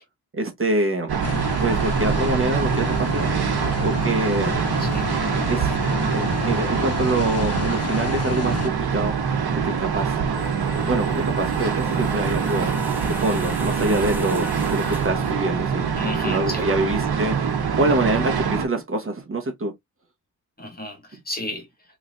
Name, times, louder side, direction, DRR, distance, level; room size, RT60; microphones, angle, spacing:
voice 1, 0.3-1.1 1.6-3.3 3.8-4.6 5.5-5.7 6.1-9.2 9.6-10.2 10.8-12.7 13.1-15.8 16.2-19.7, right 2 dB, 35° right, 1.1 m, -25 dB
sound 1, 1.1-18.7, right 6 dB, 80° right, 1.0 m, -24 dB
sound 2, 1.2-8.7, left 6 dB, 45° left, 0.5 m, -31 dB
voice 2, 4.8-5.1 16.0-16.7 20.6-21.7, left 1 dB, 25° left, 1.6 m, -32 dB
sound 3, 10.3-15.3, right 1 dB, 5° right, 0.8 m, -36 dB
3.8 x 3.2 x 2.5 m
wide cardioid pair, 130°, 38 cm